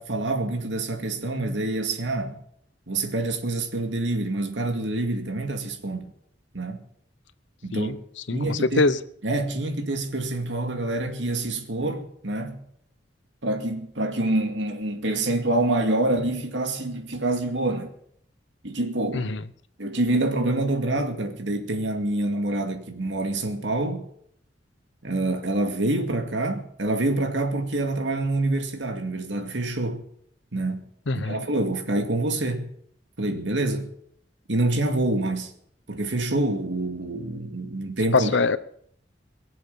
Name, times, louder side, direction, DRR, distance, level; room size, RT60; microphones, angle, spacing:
voice 1, 0.0-2.4 2.9-6.1 6.5-6.8 7.6-8.0 8.3-8.8 9.2-12.6 13.4-17.9 18.6-19.3 19.8-24.0 25.0-30.0 30.5-32.7 33.2-33.9 34.5-35.5 35.9-38.3, right 2 dB, 80° right, 2.3 m, -26 dB
voice 2, 8.3-9.0 19.1-19.4 31.1-31.4 38.1-38.6, left 3 dB, 80° left, 0.8 m, -23 dB
22.5 x 7.5 x 7.0 m
head